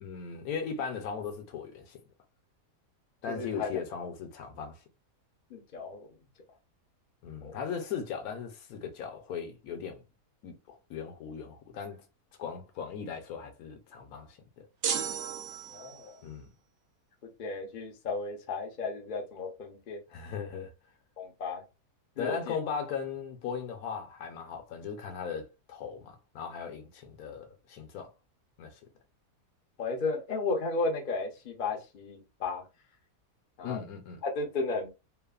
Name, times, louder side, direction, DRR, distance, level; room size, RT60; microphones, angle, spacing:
voice 1, 0.0-2.0 3.2-4.8 7.2-10.0 10.4-12.0 12.4-14.6 16.2-16.5 20.1-20.7 22.2-28.1 28.6-28.8 33.6-34.2, left 6 dB, 75° left, 1.1 m, -38 dB
voice 2, 3.3-3.7 5.5-6.1 7.4-7.6 15.7-16.2 17.4-20.0 21.2-21.6 22.2-22.5 29.8-32.6 33.6-33.8 34.2-34.9, left 3 dB, 50° left, 0.6 m, -34 dB
sound 1, 14.8-16.2, right 7 dB, 65° right, 0.7 m, -34 dB
3.1 x 2.1 x 2.3 m
omnidirectional pair, 1.6 m